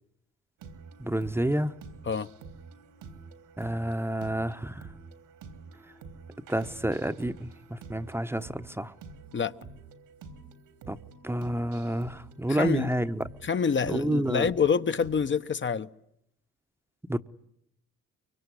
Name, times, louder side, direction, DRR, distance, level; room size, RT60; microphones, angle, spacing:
sound 1, 0.6-15.3, right 4 dB, 85° right, 3.6 m, -48 dB
voice 1, 1.0-1.7 3.6-4.9 6.5-8.9 10.9-11.0 11.2-13.3 13.8-14.5 17.1-17.2, right 1 dB, 10° right, 1.0 m, -29 dB
voice 2, 12.5-12.9 13.4-15.9, left 6 dB, 40° left, 1.1 m, -27 dB
24.5 x 23.5 x 9.9 m
cardioid pair, 90°, 30 cm